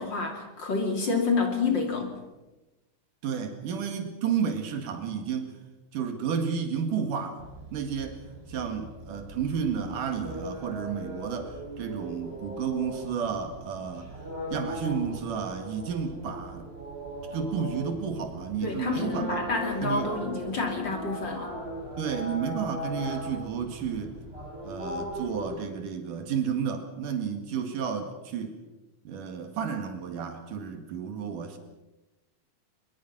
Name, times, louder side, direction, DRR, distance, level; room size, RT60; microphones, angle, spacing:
voice 1, 0.0-2.1 18.6-21.5, left 4 dB, 35° left, 3 dB, 3.3 m, -28 dB
voice 2, 3.2-5.6 5.9-7.4 7.7-8.2 8.5-14.1 14.5-16.7 17.3-19.4 19.8-20.1 22.0-24.2 24.6-28.6 29.1-31.6, right 7 dB, 85° right, 5 dB, 3.6 m, -31 dB
sound 1, 7.4-25.6, right 1 dB, 15° right, 6.3 m, -39 dB
23.5 x 22.0 x 6.1 m, 1.1 s
omnidirectional pair, 3.7 m